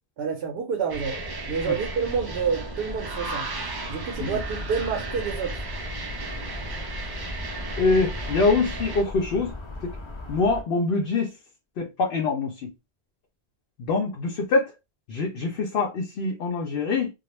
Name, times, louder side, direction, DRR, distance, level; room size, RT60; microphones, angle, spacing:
voice 1, 0.2-1.2 1.5-3.5 3.9-5.6, right 6 dB, 75° right, 0.8 m, -28 dB
sound 1, 0.9-9.0, right 2 dB, 40° right, 0.3 m, -34 dB
sound 2, 4.1-10.6, left 2 dB, 40° left, 0.5 m, -38 dB
voice 2, 7.8-9.5 10.3-11.3 11.8-12.7 13.8-14.7 15.1-17.1, left 3 dB, 70° left, 0.8 m, -24 dB
2.3 x 2.0 x 3.0 m
omnidirectional pair, 1.1 m